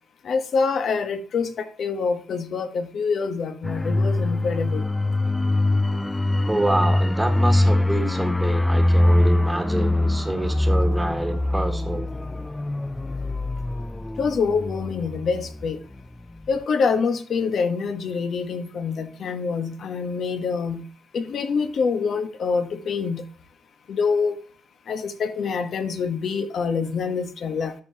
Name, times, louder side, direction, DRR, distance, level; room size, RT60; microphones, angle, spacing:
voice 1, 0.2-4.8 14.2-15.8 16.5-20.9 21.1-23.3 23.9-24.4 24.9-27.7, left 5 dB, 60° left, 1.2 m, -25 dB
sound 1, 3.6-16.0 16.3-16.5, left 1 dB, 15° left, 0.3 m, -23 dB
voice 2, 6.4-12.3, right 1 dB, 10° right, 1.6 m, -27 dB
13.0 x 5.7 x 2.8 m
cardioid pair, 90°, 0 cm